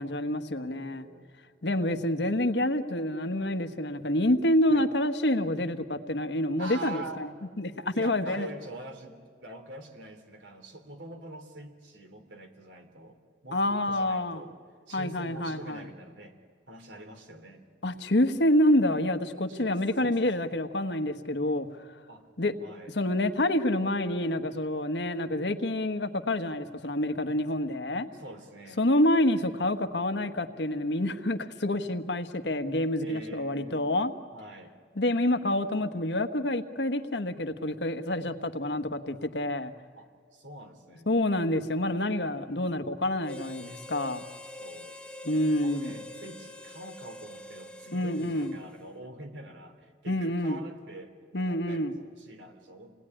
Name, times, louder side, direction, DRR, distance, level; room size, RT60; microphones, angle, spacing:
voice 1, 0.0-1.1 1.6-7.0 7.6-8.5 13.5-14.4 14.9-15.8 17.8-21.7 22.4-22.5 22.9-28.1 28.8-34.1 35.0-39.7 41.1-44.2 45.2-45.9 47.9-48.5 50.1-50.6 51.3-51.9, left 1 dB, 70° left, 8 dB, 1.3 m, -27 dB
voice 2, 0.5-1.4 4.7-4.9 6.6-7.5 7.9-13.2 13.4-14.6 14.9-16.4 16.7-17.6 19.5-20.5 22.1-22.3 22.6-23.0 28.1-28.9 33.0-33.9 34.3-34.7 40.0-41.1 44.6-45.0 45.6-52.9, right 1 dB, 85° right, 6 dB, 3.1 m, -45 dB
Harmonica, 43.2-48.9, left 2 dB, 5° left, 0.9 m, -45 dB
28.0 x 19.5 x 10.0 m, 2.1 s
head